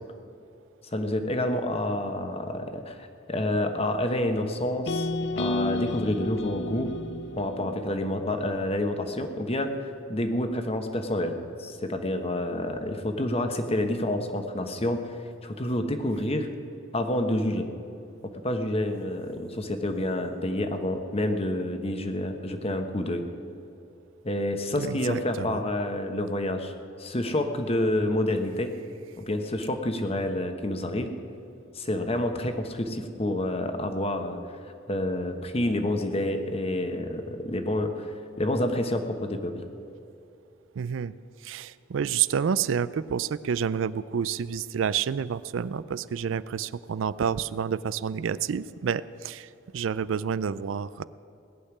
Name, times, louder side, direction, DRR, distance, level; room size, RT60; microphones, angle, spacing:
voice 1, 0.9-5.1 5.4-6.9 7.4-9.7 10.1-15.0 15.4-16.5 16.9-17.7 18.2-23.2 24.2-26.7 27.0-28.7 29.2-31.1 31.7-34.4 34.9-38.1 38.4-39.6, left 1 dB, 30° left, 6 dB, 1.1 m, -28 dB
sound 1, 4.9-9.0, left 2 dB, 65° left, 0.7 m, -32 dB
voice 2, 24.8-25.6 40.8-41.1 41.4-51.0, right 7 dB, 85° right, 17 dB, 0.4 m, -29 dB
18.5 x 6.6 x 9.9 m, 2.6 s
head